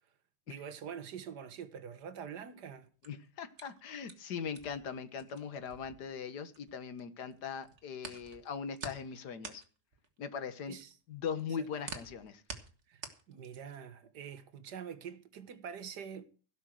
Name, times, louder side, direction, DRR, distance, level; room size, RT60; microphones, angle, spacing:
voice 1, 0.5-2.9 10.7-10.9 11.7-11.8 12.9-16.2, right 7 dB, 80° right, 1.8 m, -45 dB
sound 1, 2.8-7.0 7.3-13.9, right 4 dB, 45° right, 2.0 m, -48 dB
voice 2, 3.1-9.6 10.2-10.8 11.1-12.4, left 6 dB, 80° left, 1.8 m, -40 dB
16.5 x 6.3 x 7.6 m
omnidirectional pair, 1.8 m